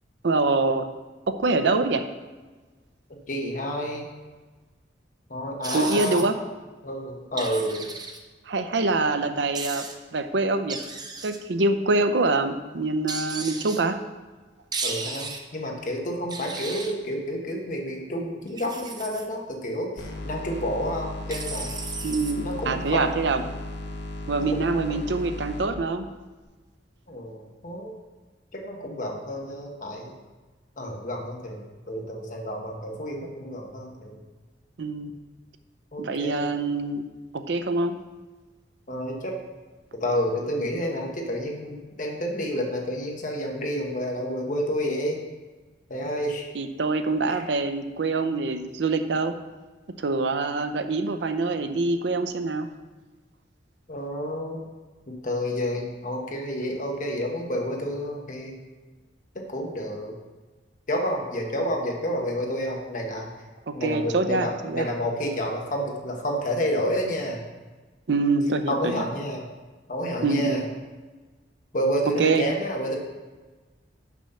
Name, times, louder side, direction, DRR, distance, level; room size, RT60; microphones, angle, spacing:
voice 1, 0.2-0.9 1.3-2.1 5.7-6.4 8.5-10.8 11.2-14.0 22.0-23.4 24.3-26.1 34.8-35.1 36.0-37.1 37.3-38.0 46.5-49.4 50.0-52.7 63.7-64.9 68.1-69.0 70.2-70.6 72.2-72.4, right 3 dB, 75° right, 9 dB, 0.6 m, -25 dB
voice 2, 3.3-4.1 5.3-6.3 6.8-7.9 14.8-21.7 22.4-23.2 24.4-24.8 27.1-28.0 28.5-30.2 30.8-31.6 31.9-34.1 35.9-36.4 38.9-39.4 40.0-45.2 45.9-46.5 47.3-47.4 53.9-54.7 55.1-58.5 59.3-60.1 60.9-63.3 63.7-67.4 68.7-69.4 69.9-70.6 71.7-73.0, equal, 45° left, 1 dB, 1.2 m, -29 dB
sound 1, 5.6-6.2 7.4-8.2 9.5-9.9 10.7-11.4 13.1-13.8 14.7-15.4 16.3-16.9 18.5-19.3 21.3-22.3, right 4 dB, 25° right, 0.7 m, -34 dB
sound 2, 20.0-25.7, left 1 dB, 75° left, 1.1 m, -36 dB
7.0 x 6.1 x 5.6 m, 1.3 s
head